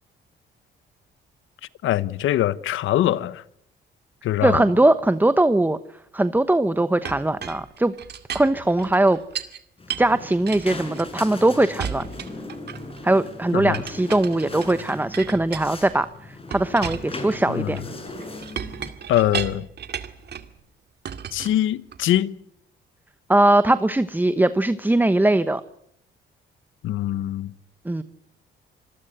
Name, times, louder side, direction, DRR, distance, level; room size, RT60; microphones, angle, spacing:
voice 1, 1.8-3.4 4.2-4.7 13.5-13.8 17.5-17.8 19.1-19.7 21.3-22.4 26.8-27.5, left 13 dB, 80° left, 1.1 m, -23 dB
voice 2, 4.4-5.8 6.1-7.9 8.3-9.2 10.0-12.0 13.0-17.8 23.3-25.6 27.8-28.0, right 1 dB, 10° right, 1.1 m, -20 dB
Chink clink, 7.0-9.6 9.9-11.4 11.8-13.0 13.7-16.0 16.5-20.5 21.0-22.2, right 8 dB, 55° right, 2.3 m, -35 dB
sound 1, 9.8-18.9, left 2 dB, 30° left, 6.4 m, -38 dB
26.5 x 20.5 x 7.9 m
cardioid pair, 90°, 20 cm